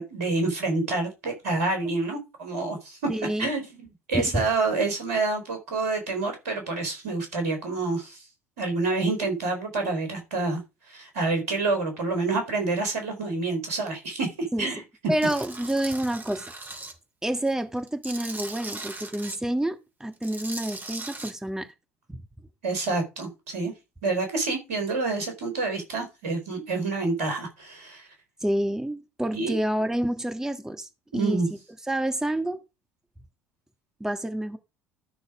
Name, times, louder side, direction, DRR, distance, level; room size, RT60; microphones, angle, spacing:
voice 1, 0.0-3.0 3.4-3.6 4.1-8.3 8.6-10.6 10.9-14.8 22.6-23.7 24.0-28.1 29.3-29.5 31.1-31.5, right 3 dB, 80° right, 4.0 m, -28 dB
voice 2, 3.1-3.5 4.1-4.2 14.5-14.7 15.1-16.4 17.2-21.7 28.4-31.4 31.9-32.6 34.0-34.6, right 1 dB, 5° right, 1.6 m, -28 dB
Tools, 15.2-16.9 17.4-19.4 20.1-21.3, right 2 dB, 25° right, 3.2 m, -39 dB
13.0 x 6.3 x 4.9 m
hypercardioid pair, 60°, 8 cm